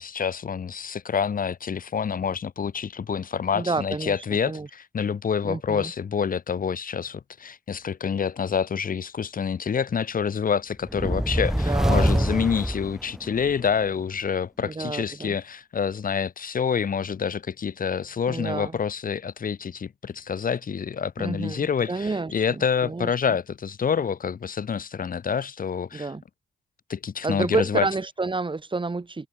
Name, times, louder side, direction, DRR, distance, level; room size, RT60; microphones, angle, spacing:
voice 1, 0.0-26.1 26.9-27.9, left 7 dB, 55° left, 2.6 m, -27 dB
voice 2, 3.5-4.7 5.4-5.9 11.5-12.5 14.6-15.4 18.3-18.8 21.2-23.1 25.9-26.2 27.2-29.3, right 3 dB, 30° right, 2.5 m, -29 dB
sound 1, 10.8-13.6, equal, 5° right, 4.5 m, -24 dB
supercardioid pair, 50°, 17 cm